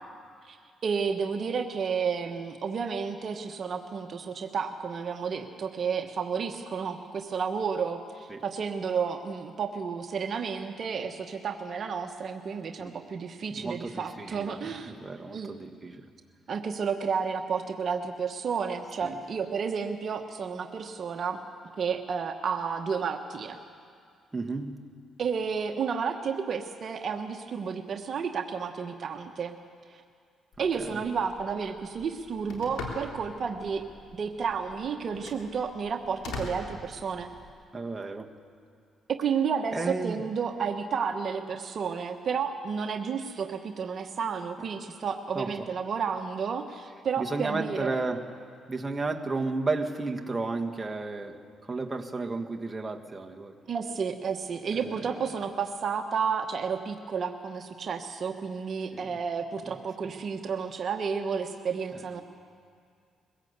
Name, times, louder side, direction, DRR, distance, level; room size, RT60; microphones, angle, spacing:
voice 1, 0.8-15.0 15.3-15.5 16.5-21.4 21.8-23.6 25.2-29.6 29.9-30.0 30.6-33.8 34.1-37.3 39.2-48.0 53.7-62.2, right 6 dB, 50° right, 5 dB, 1.1 m, -31 dB
voice 2, 13.5-16.1 19.0-19.1 24.3-24.9 30.8-31.0 37.7-38.4 39.7-40.2 44.6-44.7 45.3-45.7 47.2-48.4 48.7-53.6 54.7-55.2 58.9-59.1 61.9-62.2, right 3 dB, 15° right, 2 dB, 1.6 m, -33 dB
Telephone, 30.5-37.5, left 3 dB, 80° left, 3.5 m, -44 dB
22.0 x 16.5 x 8.1 m, 2.3 s
cardioid pair, 90°, 0 cm